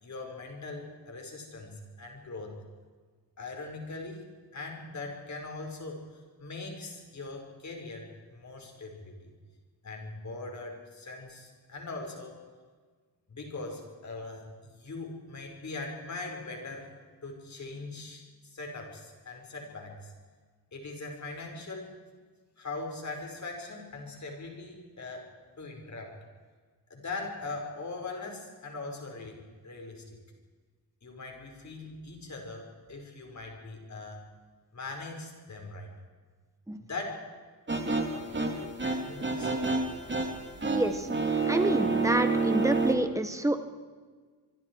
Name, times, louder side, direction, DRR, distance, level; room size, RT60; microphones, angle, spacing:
voice 1, 0.0-2.6 3.4-4.3 4.5-6.0 6.4-9.3 9.8-12.4 13.3-16.9 17.2-20.1 20.7-21.9 22.6-25.3 25.6-26.2 26.9-30.2 31.0-34.2 34.7-35.9 36.8-37.3 38.1-39.5, left 3 dB, 45° left, 2 dB, 5.4 m, -41 dB
sound 1, 37.7-42.9, right 3 dB, 30° right, 2.6 m, -29 dB
voice 2, 40.8-41.1 41.5-43.6, right 1 dB, 10° right, 8 dB, 1.5 m, -28 dB
25.0 x 25.0 x 4.8 m, 1.5 s
wide cardioid pair, 170°, 39 cm